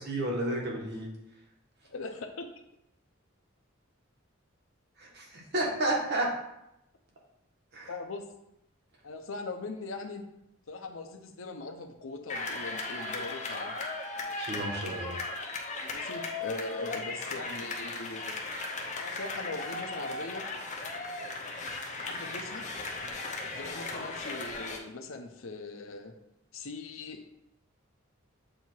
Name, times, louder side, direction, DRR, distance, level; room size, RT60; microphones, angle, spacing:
voice 1, 0.1-1.1 5.0-6.3 7.7-7.9 14.4-15.1, right 1 dB, 55° right, -1 dB, 1.4 m, -31 dB
voice 2, 1.9-2.5 7.9-8.3 9.0-10.2 10.7-13.8 15.9-18.4 19.0-20.4 22.0-22.6 23.5-26.1 26.5-27.2, left 3 dB, 80° left, 5 dB, 0.7 m, -40 dB
sound 1, 12.3-24.8, left 3 dB, 35° left, 0.7 m, -37 dB
7.6 x 2.8 x 4.5 m, 0.83 s
head